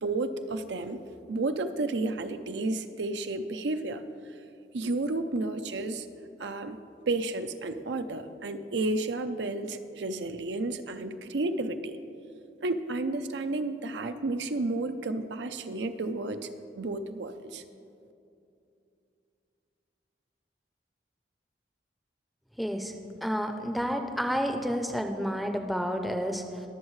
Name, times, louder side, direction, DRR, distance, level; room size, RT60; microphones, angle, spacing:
voice 1, 0.0-1.0 1.3-4.0 4.7-6.1 6.4-6.8 7.1-12.0 12.6-16.5 16.7-17.6, right 2 dB, 85° right, 8 dB, 0.6 m, -31 dB
voice 2, 22.6-22.9 23.2-26.6, equal, ahead, 4 dB, 0.5 m, -30 dB
21.5 x 7.3 x 3.2 m, 2.6 s
head